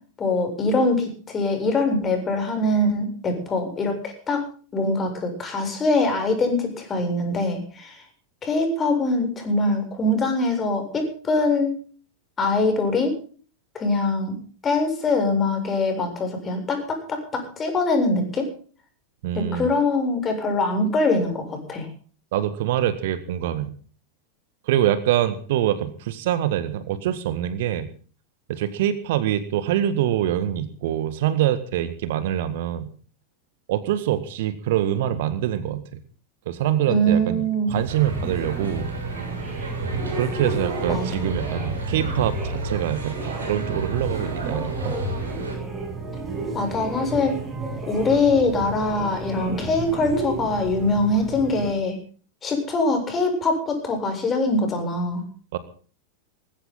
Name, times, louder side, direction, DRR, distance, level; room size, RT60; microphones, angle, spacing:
voice 1, 0.2-4.5 4.7-8.0 8.4-11.7 12.4-13.1 13.7-14.4 14.6-18.5 19.3-21.9 36.9-37.7 40.9-41.3 46.5-47.4 47.9-52.0 52.4-55.2, left 2 dB, 20° left, 5 dB, 7.4 m, -23 dB
voice 2, 19.2-19.7 22.3-23.7 24.7-27.9 28.5-32.9 33.7-35.8 36.5-37.4 37.7-38.9 40.1-45.0 55.5-55.6, right 11 dB, 55° right, 13 dB, 1.7 m, -24 dB
sound 1, 37.7-51.7, right 3 dB, 20° right, 6.8 m, -33 dB
sound 2, 37.9-45.5, right 2 dB, 70° right, 6.8 m, -31 dB
21.0 x 16.0 x 3.9 m, 0.42 s
figure-of-eight pair, 90°, 0 cm